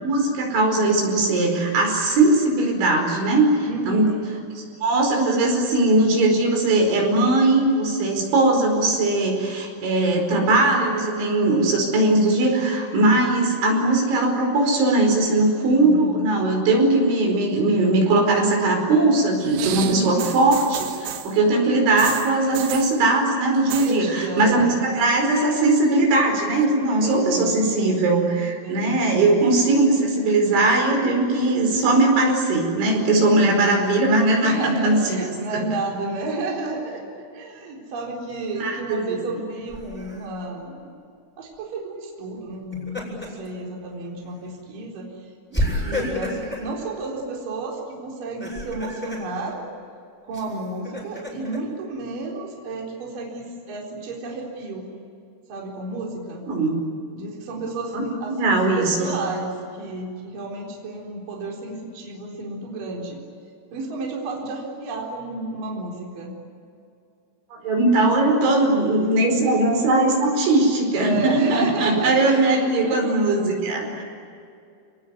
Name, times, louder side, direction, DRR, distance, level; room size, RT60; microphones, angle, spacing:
voice 1, 0.0-3.5 3.9-4.1 4.8-35.6 38.6-39.2 56.5-56.8 57.9-58.0 58.3-59.2 67.6-74.0, right 2 dB, 70° right, 1 dB, 7.2 m, -20 dB
voice 2, 3.6-4.3 10.2-10.7 15.7-16.2 19.7-20.3 23.6-24.7 27.0-27.6 28.6-29.0 33.2-33.7 34.4-37.0 37.3-40.9 41.4-49.6 50.2-54.8 55.5-56.4 57.1-63.2 63.7-66.3 70.9-73.2, right 2 dB, 45° right, -2 dB, 5.5 m, -31 dB
sound 1, 19.4-21.4 22.0-23.0 23.5-24.0 24.2-24.7 25.1-25.9 26.6-26.7, right 11 dB, 85° right, 4.1 m, -32 dB
Laughter, 39.7-40.2 42.5-43.5 43.9-44.1 45.5-46.7 48.2-49.3 50.3-51.6, left 1 dB, ahead, 7.4 m, -30 dB
30.0 x 20.0 x 9.7 m, 2.4 s
omnidirectional pair, 5.6 m